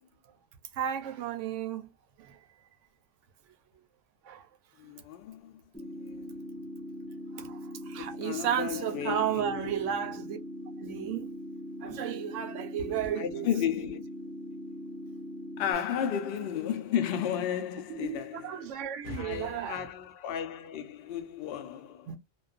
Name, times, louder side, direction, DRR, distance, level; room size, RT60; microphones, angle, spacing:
voice 1, 0.7-1.9 2.2-2.7 4.2-4.5 7.3-10.4 10.8-11.4 11.8-13.5 17.9-19.9 22.1-22.2, right 9 dB, 80° right, 0.9 m, -34 dB
voice 2, 4.8-6.4 8.0-9.7 13.2-14.0 15.6-18.8 19.0-22.2, left 9 dB, 65° left, 0.7 m, -34 dB
sound 1, 5.7-15.7, equal, 10° left, 0.4 m, -41 dB
2.3 x 2.3 x 2.3 m
omnidirectional pair, 1.3 m